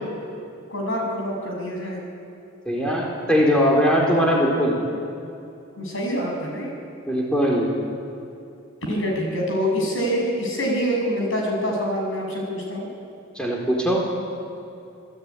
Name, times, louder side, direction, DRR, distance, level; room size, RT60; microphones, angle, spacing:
voice 1, 0.7-2.0 5.8-6.7 8.8-12.9, equal, 65° left, 0 dB, 7.8 m, -25 dB
voice 2, 2.7-4.8 7.1-7.7 13.3-14.1, equal, 5° left, -3 dB, 4.2 m, -20 dB
28.0 x 19.0 x 9.9 m, 2.7 s
head